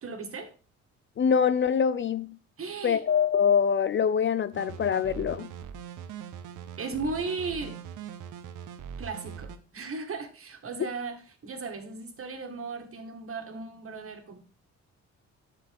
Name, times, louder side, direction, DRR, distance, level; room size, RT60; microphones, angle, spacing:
voice 1, 0.0-0.5 2.6-3.0 6.8-7.8 9.0-14.4, right 4 dB, 45° right, 1.9 m, -36 dB
voice 2, 1.2-2.4 2.8-5.5, left 7 dB, 40° left, 0.5 m, -24 dB
sound 1, 4.5-9.6, right 8 dB, 85° right, 0.9 m, -41 dB
8.3 x 6.4 x 3.5 m
cardioid pair, 90°, 30 cm